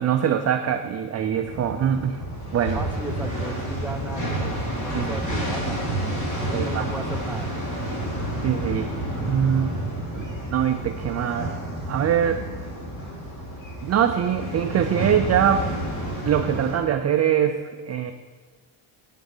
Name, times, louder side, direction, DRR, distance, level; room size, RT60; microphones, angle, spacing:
voice 1, 0.0-2.2 2.5-2.8 4.9-5.4 6.5-6.9 8.4-8.9 9.2-9.8 10.1-10.2 10.5-11.5 11.9-12.4 13.8-15.7 16.3-18.1, right 9 dB, 35° right, 7 dB, 0.4 m, -23 dB
sound 1, 1.4-16.8, right 1 dB, 35° left, 2.9 m, -30 dB
voice 2, 2.7-5.9 6.4-7.5, right 2 dB, 5° right, 3 dB, 0.7 m, -36 dB
8.9 x 7.4 x 5.5 m, 1.4 s
cardioid pair, 155°, 49 cm